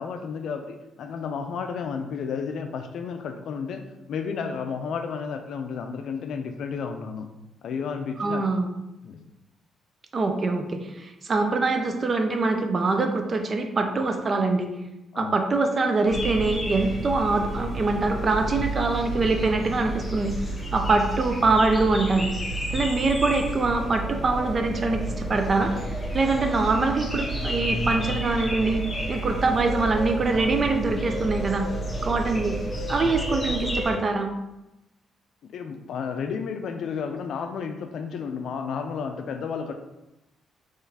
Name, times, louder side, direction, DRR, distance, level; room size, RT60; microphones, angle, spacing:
voice 1, 0.0-3.8 4.1-7.3 7.6-8.4 9.0-9.2 15.1-15.4 33.0-33.1 35.5-39.7, left 6 dB, 70° left, 6 dB, 0.4 m, -32 dB
voice 2, 8.2-8.7 10.1-14.7 15.2-20.3 20.7-22.3 22.7-31.7 32.0-32.6 32.9-34.3, right 3 dB, 40° right, 5 dB, 0.5 m, -24 dB
sound 1, 16.1-33.9, right 1 dB, 15° left, 1.0 m, -31 dB
3.8 x 3.0 x 2.8 m, 0.94 s
cardioid pair, 90°, 0 cm